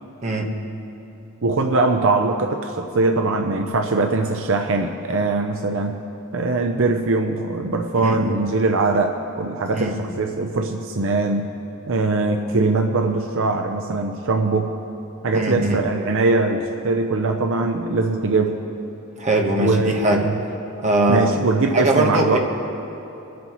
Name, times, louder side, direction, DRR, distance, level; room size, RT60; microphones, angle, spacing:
voice 1, 1.4-6.0 6.3-11.5 11.9-14.7 15.2-18.6 19.6-20.3 21.1-22.4, right 3 dB, 65° right, 4 dB, 0.7 m, -21 dB
voice 2, 8.0-8.3 9.7-9.9 15.3-15.8 19.2-20.3 20.8-21.4 21.7-22.4, right 1 dB, 35° right, 1 dB, 1.2 m, -20 dB
26.0 x 9.4 x 3.1 m, 2.9 s
head